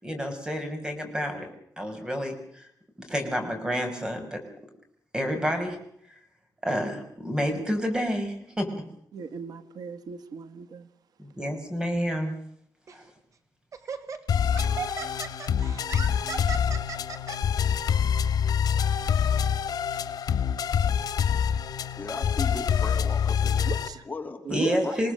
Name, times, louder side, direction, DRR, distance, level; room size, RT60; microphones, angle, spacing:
voice 1, 0.0-1.5 1.8-2.7 3.0-4.4 5.1-5.8 6.6-8.7 11.2-12.4 12.9-13.0 24.5-25.1, equal, 10° right, 5 dB, 5.8 m, -29 dB
voice 2, 9.1-10.9 23.6-24.0 24.4-25.1, right 6 dB, 85° right, 10 dB, 1.5 m, -36 dB
Laughter, 12.9-13.1 13.7-17.4, right 6 dB, 55° right, 2.3 m, -36 dB
sound 1, 14.3-23.9, left 7 dB, 80° left, 1.8 m, -26 dB
voice 3, 22.0-23.7 24.0-25.0, left 3 dB, 25° left, 4 dB, 2.7 m, -37 dB
28.0 x 18.5 x 6.7 m, 0.71 s
wide cardioid pair, 150°, 7 cm